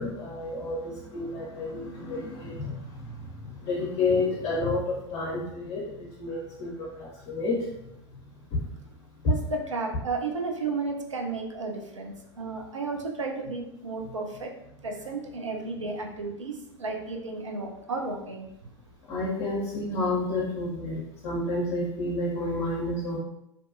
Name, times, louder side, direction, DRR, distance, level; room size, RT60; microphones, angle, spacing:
voice 1, 0.0-7.7 8.5-8.6 9.2-9.3 14.0-14.1 19.1-23.2, left 2 dB, 40° left, -5 dB, 0.6 m, -30 dB
voice 2, 9.2-14.5 14.8-18.5, right 3 dB, 80° right, 1 dB, 0.5 m, -33 dB
2.5 x 2.2 x 2.5 m, 0.80 s
figure-of-eight pair, 85°, 16 cm